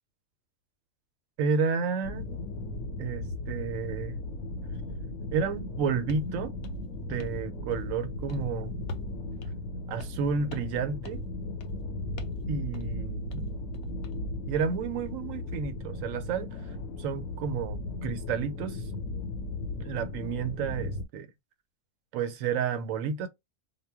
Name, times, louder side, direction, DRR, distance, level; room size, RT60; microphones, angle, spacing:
voice 1, 1.4-2.4 3.0-4.2 5.3-6.5 7.0-8.9 9.9-11.2 12.5-13.5 14.5-16.6 17.0-18.8 19.8-21.3 22.1-23.3, right 6 dB, 85° right, 1.0 m, -31 dB
sound 1, 2.0-21.1, left 2 dB, 90° left, 1.0 m, -36 dB
sound 2, 6.1-6.3 6.6-7.4 7.7-8.0 8.3-8.5 8.9-9.1 9.4-9.5 10.0-10.2 10.5-10.8 11.0-11.3 11.6-11.8 12.2-12.4 12.7-12.9 13.3-14.2, left 2 dB, 60° left, 0.7 m, -45 dB
2.2 x 2.1 x 3.4 m
omnidirectional pair, 1.3 m